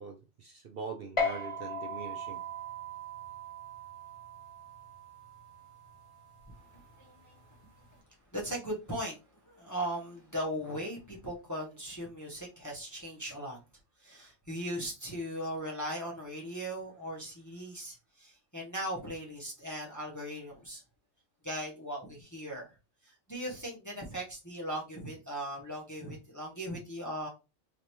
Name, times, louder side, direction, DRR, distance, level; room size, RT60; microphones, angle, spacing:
voice 1, 0.0-2.4, right 5 dB, 55° right, 0.8 m, -43 dB
sound 1, 1.2-8.0, left 1 dB, 30° left, 0.7 m, -39 dB
voice 2, 6.6-7.6 7.9-8.0 8.3-13.6 14.0-20.8 21.4-22.8 23.0-27.3, equal, 15° left, 1.1 m, -39 dB
3.9 x 3.2 x 3.0 m
omnidirectional pair, 1.3 m